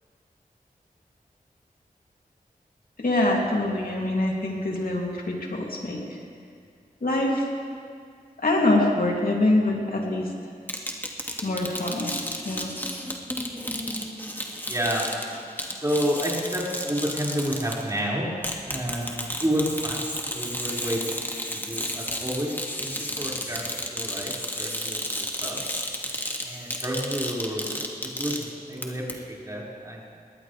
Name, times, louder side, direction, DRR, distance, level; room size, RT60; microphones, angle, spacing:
voice 1, 3.0-6.0 7.0-7.5 8.4-10.3 11.4-12.2 12.4-12.7, left 2 dB, 65° left, -2 dB, 2.9 m, -24 dB
sound 1, 10.7-18.0 18.4-28.8 29.1-29.2, left 1 dB, 10° left, 2.1 m, -32 dB
voice 2, 14.7-15.1 15.8-18.3 18.6-21.0 21.5-22.5 22.8-25.6 26.5-30.0, equal, 20° right, -6 dB, 5.5 m, -30 dB
21.5 x 18.5 x 3.4 m, 2.2 s
cardioid pair, 45°, 16 cm